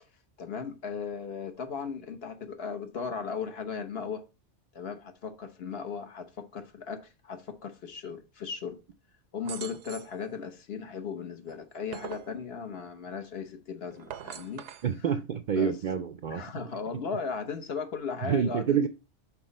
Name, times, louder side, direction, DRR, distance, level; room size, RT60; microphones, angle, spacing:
voice 1, 0.4-4.2 4.7-8.8 9.3-14.6 15.5-15.8 16.3-18.9, left 5 dB, 60° left, 1.1 m, -37 dB
sound 1, 9.4-10.2 11.5-12.3 13.9-14.9, right 10 dB, 80° right, 0.9 m, -42 dB
voice 2, 14.8-16.4 18.2-18.9, right 7 dB, 60° right, 0.5 m, -27 dB
6.0 x 4.0 x 5.2 m
omnidirectional pair, 1.2 m